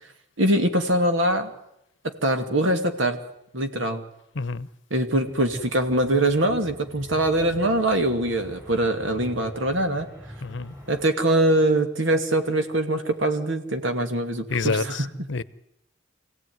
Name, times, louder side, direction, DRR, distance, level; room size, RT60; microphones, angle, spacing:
voice 1, 0.4-1.5 2.0-3.2 3.5-4.0 4.9-10.1 10.9-15.3, right 1 dB, 75° right, 2.4 m, -23 dB
voice 2, 4.3-4.7 10.4-10.7 14.5-15.4, left 4 dB, 65° left, 0.8 m, -28 dB
sound 1, 5.3-11.1, equal, 15° right, 7.5 m, -44 dB
25.5 x 17.0 x 9.5 m
head